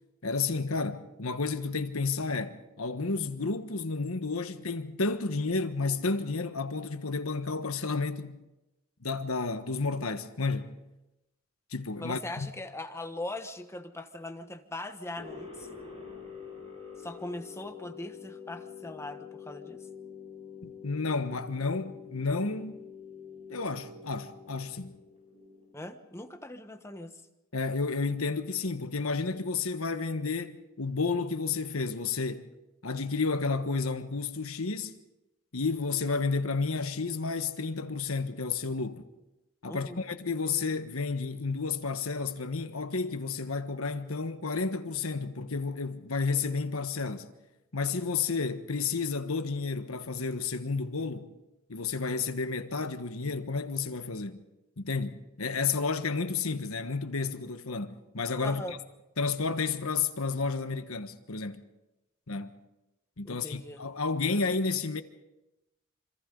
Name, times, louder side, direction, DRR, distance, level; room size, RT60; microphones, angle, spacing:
voice 1, 0.2-8.4 9.0-10.8 11.7-12.5 20.6-22.8 23.5-25.0 27.5-32.5 32.8-34.9 35.5-39.1 39.6-47.3 47.7-51.3 51.7-54.4 54.8-58.8 59.2-61.6 62.3-62.6 63.2-65.0, left 4 dB, 85° left, 1.4 m, -31 dB
voice 2, 12.0-15.7 17.0-19.9 25.7-27.2 39.7-40.0 58.4-58.8 63.2-63.8, left 2 dB, 15° left, 1.2 m, -40 dB
sound 1, 15.2-26.0, left 6 dB, 30° right, 7.1 m, -46 dB
26.5 x 26.0 x 4.0 m
head